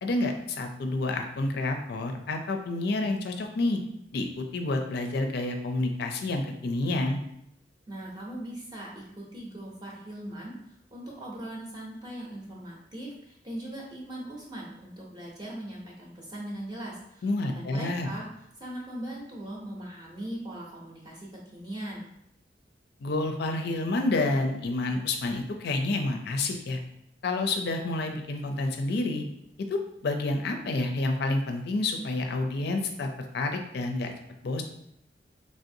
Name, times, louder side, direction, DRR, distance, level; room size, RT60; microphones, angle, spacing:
voice 1, 0.0-3.8 4.1-7.2 17.2-18.1 23.0-26.8 27.2-29.2 29.7-34.1 34.4-34.6, left 2 dB, 65° left, 4 dB, 0.4 m, -29 dB
voice 2, 7.9-10.6 10.9-18.3 18.6-22.1, right 1 dB, 25° right, -3 dB, 0.6 m, -40 dB
3.3 x 2.5 x 2.6 m, 0.76 s
head